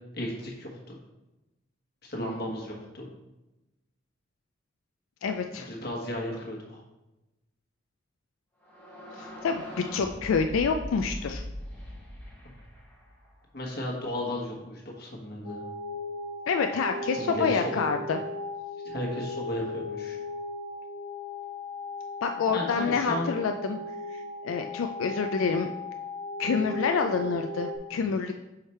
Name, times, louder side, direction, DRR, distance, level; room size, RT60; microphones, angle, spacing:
voice 1, 0.1-1.0 2.1-3.1 5.7-6.8 13.5-15.6 17.2-17.6 18.8-20.2 22.5-23.3, left 1 dB, 50° left, -1 dB, 1.3 m, -34 dB
voice 2, 5.2-5.7 9.1-9.6 9.9-11.4 16.5-18.2 22.2-23.8 24.1-25.7 26.4-28.3, left 5 dB, 85° left, 5 dB, 0.4 m, -27 dB
sound 1, 8.6-13.4, equal, 10° left, 1.0 m, -41 dB
sound 2, 15.4-27.8, left 2 dB, 70° left, 1.1 m, -37 dB
4.9 x 4.7 x 4.3 m, 0.99 s
head